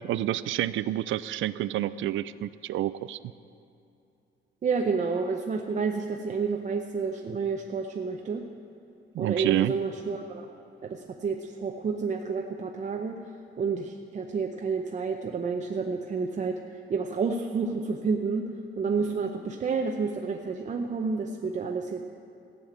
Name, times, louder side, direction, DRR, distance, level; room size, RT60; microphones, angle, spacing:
voice 1, 0.0-3.2 9.1-9.7, right 13 dB, 80° right, 15 dB, 0.4 m, -28 dB
voice 2, 4.6-8.4 9.2-10.5 10.8-13.2 13.6-18.5 18.8-22.0, right 5 dB, 40° right, 3 dB, 0.6 m, -30 dB
15.0 x 6.6 x 8.9 m, 2.7 s
cardioid pair, 150°, 20 cm